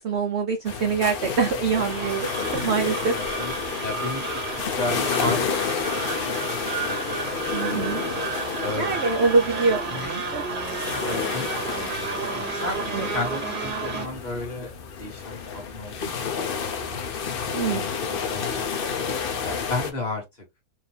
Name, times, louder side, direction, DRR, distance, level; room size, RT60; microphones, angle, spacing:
voice 1, 0.0-3.2 7.5-8.1 8.8-10.4 12.9-13.1 17.5-17.9, right 5 dB, 65° right, 0.6 m, -25 dB
sound 1, 0.6-19.9, left 6 dB, 60° left, 0.5 m, -30 dB
sound 2, 1.7-14.1, right 4 dB, 35° right, 0.9 m, -31 dB
voice 2, 3.1-3.5 3.8-7.4 8.6-9.0 9.9-10.2 11.0-11.8 12.5-12.8 13.1-14.7 15.0-17.0 17.6-18.7 19.4-20.2, left 2 dB, 25° left, 1.8 m, -34 dB
4.4 x 2.7 x 3.3 m
omnidirectional pair, 1.8 m